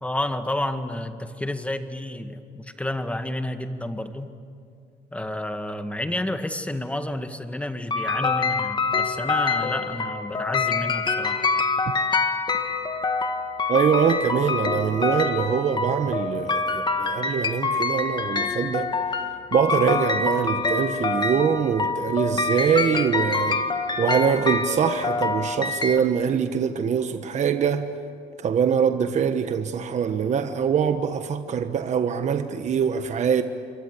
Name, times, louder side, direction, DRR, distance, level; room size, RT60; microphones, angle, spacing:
voice 1, 0.0-4.3 5.1-11.5, left 1 dB, 5° left, 1.9 m, -30 dB
sound 1, 7.9-26.0, left 4 dB, 25° left, 1.9 m, -26 dB
voice 2, 13.7-18.9 19.5-23.6 24.0-27.9 28.4-33.4, right 7 dB, 45° right, 1.2 m, -23 dB
28.0 x 23.5 x 8.4 m
cardioid pair, 110°, 17 cm